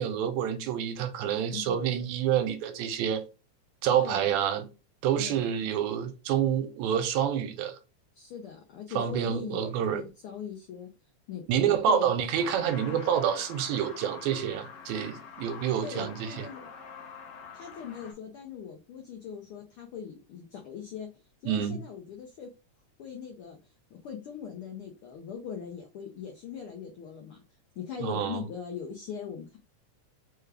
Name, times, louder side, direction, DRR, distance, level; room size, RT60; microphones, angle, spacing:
voice 1, 0.0-3.2 3.8-4.7 5.0-7.8 9.0-10.0 11.5-16.5 21.5-21.8 28.0-28.4, right 9 dB, 85° right, 1.9 m, -28 dB
voice 2, 1.5-1.9 3.9-4.3 5.2-5.5 8.2-10.9 11.3-12.1 15.8-16.7 17.5-21.1 21.4-22.5 23.0-27.4 27.8-29.6, left 7 dB, 85° left, 1.2 m, -40 dB
Truck, 12.3-18.1, left 5 dB, 70° left, 2.1 m, -45 dB
4.6 x 2.3 x 3.3 m
omnidirectional pair, 3.3 m